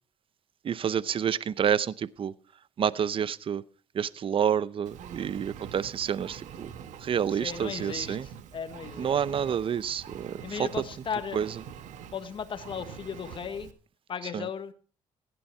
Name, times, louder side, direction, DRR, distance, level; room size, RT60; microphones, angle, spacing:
voice 1, 0.6-2.3 2.8-3.6 3.9-6.7 7.0-8.3 9.0-10.7 11.3-11.5 14.3-14.5, right 8 dB, 45° right, 0.6 m, -28 dB
Engine, 4.8-13.7, right 8 dB, 75° right, 1.3 m, -45 dB
voice 2, 7.3-9.2 10.4-11.4 12.1-13.7 14.1-14.7, left 7 dB, 45° left, 1.3 m, -36 dB
16.0 x 10.0 x 4.4 m
cardioid pair, 90°, 13 cm